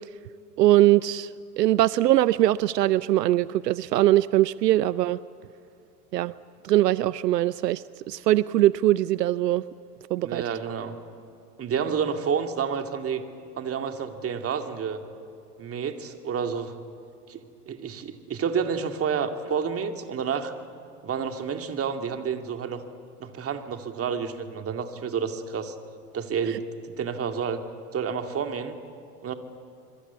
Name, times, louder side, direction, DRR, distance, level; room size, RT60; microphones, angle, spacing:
voice 1, 0.6-1.3 1.6-5.2 6.1-6.3 6.6-9.6 10.1-10.4, right 14 dB, 80° right, 18 dB, 0.7 m, -21 dB
voice 2, 10.2-11.0 11.6-13.2 13.6-15.0 15.6-16.7 17.3-20.5 21.0-22.8 23.2-25.8 26.1-27.6 27.9-28.8 29.2-29.3, right 6 dB, 30° right, 6 dB, 2.3 m, -29 dB
26.0 x 23.0 x 8.3 m, 2.6 s
hypercardioid pair, 95°, 48 cm